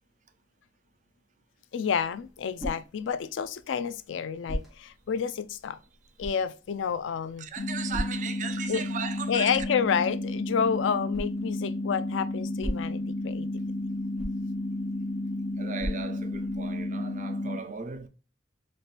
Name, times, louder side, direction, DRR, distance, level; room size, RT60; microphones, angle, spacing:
voice 1, 1.7-5.8 6.2-7.5 8.7-8.8 9.3-13.5, left 7 dB, 90° left, 0.4 m, -29 dB
sound 1, 1.9-16.8, equal, ahead, 1.0 m, -42 dB
voice 2, 7.4-9.6 15.6-18.1, right 6 dB, 45° right, 0.5 m, -37 dB
sound 2, 7.6-17.6, left 1 dB, 45° left, 1.2 m, -32 dB
4.3 x 2.5 x 3.2 m
head